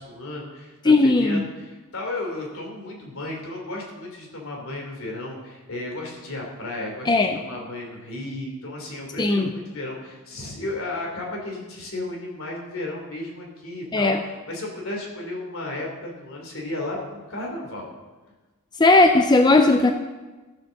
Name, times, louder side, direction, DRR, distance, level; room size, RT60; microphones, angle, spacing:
voice 1, 0.0-17.9, left 2 dB, 65° left, -1 dB, 3.1 m, -34 dB
voice 2, 0.8-1.4 7.1-7.4 9.2-9.5 13.9-14.2 18.8-19.9, left 2 dB, 20° left, 6 dB, 0.5 m, -17 dB
14.0 x 6.7 x 6.4 m, 1.2 s
head